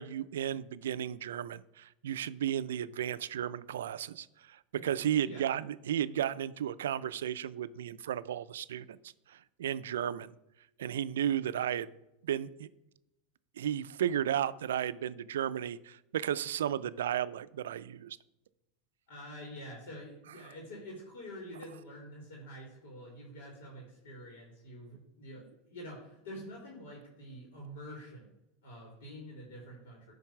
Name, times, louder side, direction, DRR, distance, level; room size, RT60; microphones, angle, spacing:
voice 1, 0.0-9.0 9.3-10.3 10.8-11.9 12.2-12.7 13.6-18.2, right 10 dB, 85° right, 16 dB, 0.3 m, -34 dB
voice 2, 4.7-5.4 19.1-28.3 28.6-30.1, equal, 75° left, -1 dB, 2.7 m, -47 dB
9.9 x 3.9 x 5.7 m, 0.89 s
hypercardioid pair, 105°, 0 cm